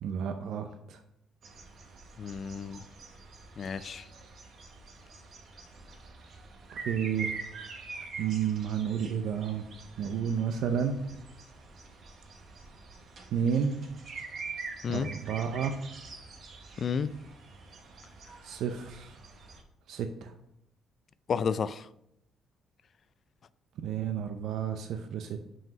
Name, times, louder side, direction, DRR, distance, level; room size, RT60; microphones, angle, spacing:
voice 1, 0.0-1.0 6.7-7.4 8.2-9.7 10.0-11.0 13.3-13.8 14.9-15.7 18.4-19.2 19.9-20.3 23.8-25.4, right 7 dB, 75° right, 0.5 m, -31 dB
sound 1, 1.4-19.6, right 4 dB, 55° right, 1.1 m, -45 dB
voice 2, 2.2-2.8 3.6-4.1 14.8-15.1 16.8-17.1 21.3-21.9, left 6 dB, 40° left, 0.3 m, -31 dB
5.7 x 5.4 x 5.0 m
cardioid pair, 135°, 0 cm